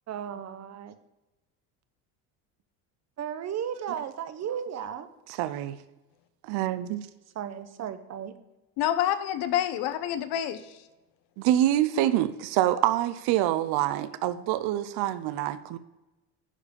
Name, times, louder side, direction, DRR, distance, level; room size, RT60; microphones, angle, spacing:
voice 1, 0.1-1.0 3.2-5.1 7.3-8.3, right 9 dB, 40° right, 11 dB, 0.9 m, -35 dB
voice 2, 5.3-5.8 6.4-7.0 11.4-15.8, right 13 dB, 65° right, 13 dB, 0.7 m, -26 dB
voice 3, 8.8-10.8, left 11 dB, 65° left, 11 dB, 1.0 m, -28 dB
11.5 x 5.0 x 5.2 m, 1.0 s
supercardioid pair, 110°, 42 cm